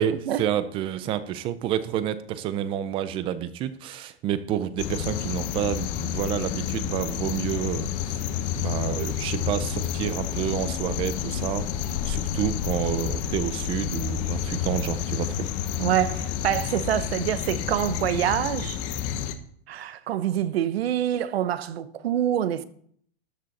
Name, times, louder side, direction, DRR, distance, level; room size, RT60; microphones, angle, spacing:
voice 1, 0.0-8.2 8.6-15.5, right 10 dB, 20° right, 0.5 m, -29 dB
sound 1, 4.8-19.3, left 9 dB, 35° left, 1.0 m, -29 dB
voice 2, 15.8-18.8 19.7-22.6, right 11 dB, 80° right, 1.1 m, -26 dB
13.0 x 10.5 x 4.2 m
supercardioid pair, 160°, 30 cm